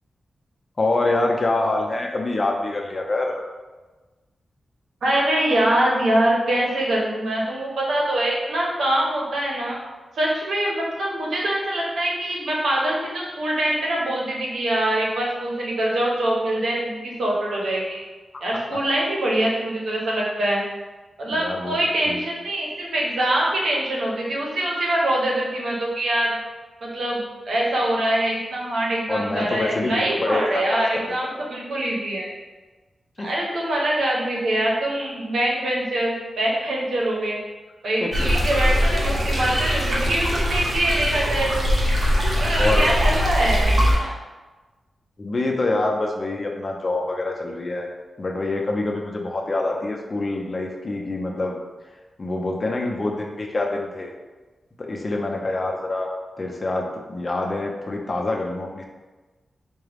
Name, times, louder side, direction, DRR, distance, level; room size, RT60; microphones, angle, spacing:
voice 1, 0.8-3.4 18.3-18.5 21.3-21.8 22.1-22.2 29.1-31.5 33.2-33.3 38.0-38.3 42.5-43.1 45.2-47.9 48.2-51.6 52.2-54.1 54.8-56.1 56.4-58.8, left 2 dB, 40° left, 1 dB, 0.6 m, -26 dB
voice 2, 5.0-9.8 10.2-18.0 18.4-20.6 21.2-26.4 26.8-32.3 33.2-37.4 37.8-41.7 42.3-44.1, right 1 dB, 85° right, -3 dB, 0.9 m, -24 dB
sound 1, 38.1-44.0, equal, 55° right, 1.0 m, -21 dB
4.7 x 2.2 x 3.4 m, 1.3 s
cardioid pair, 65°, 0 cm